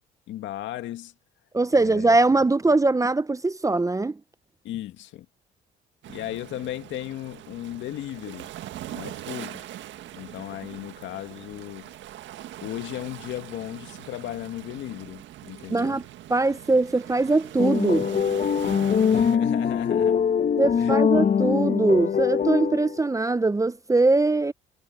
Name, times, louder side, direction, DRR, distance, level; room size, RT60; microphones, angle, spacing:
voice 1, 0.3-1.1 1.7-2.2 4.6-5.3 6.1-8.5 8.9-9.7 10.1-11.9 12.6-16.0 19.1-20.2 20.8-21.0, left 14 dB, 70° left, 1.9 m, -36 dB
voice 2, 1.5-4.2 15.7-16.0 16.3-18.1 20.6-24.5, right 3 dB, 15° right, 0.8 m, -22 dB
sound 1, 6.0-19.4, right 13 dB, 70° right, 1.7 m, -41 dB
sound 2, 17.6-23.0, left 7 dB, 45° left, 1.6 m, -23 dB
supercardioid pair, 70°, 20 cm